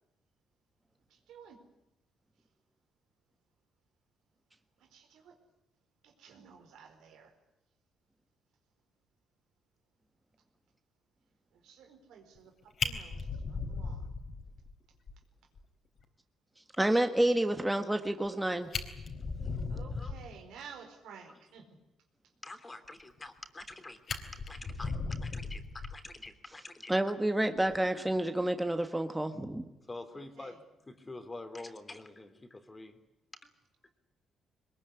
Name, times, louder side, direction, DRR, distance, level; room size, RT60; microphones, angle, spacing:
voice 1, 1.1-1.6 4.8-5.4 6.0-7.3 11.5-14.1 19.7-21.8 30.1-30.7, right 6 dB, 85° right, 5 dB, 4.6 m, -53 dB
Fire, 12.3-12.5 12.8-14.7 15.1-15.2 15.5-15.6 16.0-16.1 18.2-18.3 18.6-20.4 23.2-23.7 24.1-26.3 27.6-27.8, left 4 dB, 50° left, 3.9 m, -37 dB
voice 2, 16.8-18.7 26.9-29.6, right 1 dB, 10° right, 7 dB, 1.6 m, -29 dB
voice 3, 22.4-26.9 29.9-30.6 30.9-33.0 33.4-33.5 33.8-33.9, left 2 dB, 20° left, 9 dB, 3.2 m, -46 dB
22.0 x 21.0 x 9.9 m, 0.95 s
cardioid pair, 90°, 0 cm